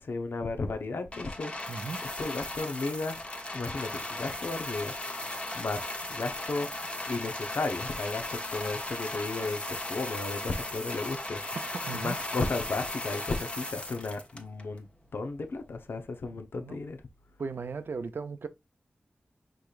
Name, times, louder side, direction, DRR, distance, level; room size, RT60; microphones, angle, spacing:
voice 1, 0.0-1.9 2.2-3.2 3.5-5.0 5.5-6.8 7.1-11.6 11.9-14.9 15.1-17.0, left 3 dB, 80° left, 0.8 m, -34 dB
sound 1, 1.1-14.8 15.6-15.7, left 2 dB, 30° left, 1.2 m, -37 dB
voice 2, 1.7-2.0 11.5-12.2 16.3-16.8 17.4-18.5, right 4 dB, 75° right, 0.5 m, -37 dB
4.9 x 4.3 x 2.4 m
cardioid pair, 45°, 4 cm